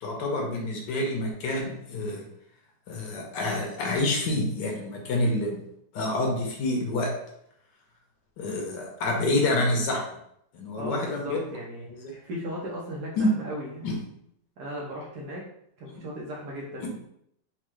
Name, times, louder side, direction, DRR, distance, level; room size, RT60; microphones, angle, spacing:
voice 1, 0.0-2.3 2.9-5.6 5.9-7.1 8.4-10.0 10.5-11.4 11.9-12.2 13.2-13.3 13.8-14.0 16.8-16.9, left 1 dB, 80° left, 1 dB, 1.5 m, -27 dB
voice 2, 10.8-14.0 14.6-15.4 15.8-16.9, equal, 70° right, -4 dB, 1.2 m, -37 dB
4.4 x 2.3 x 3.1 m, 0.73 s
omnidirectional pair, 1.9 m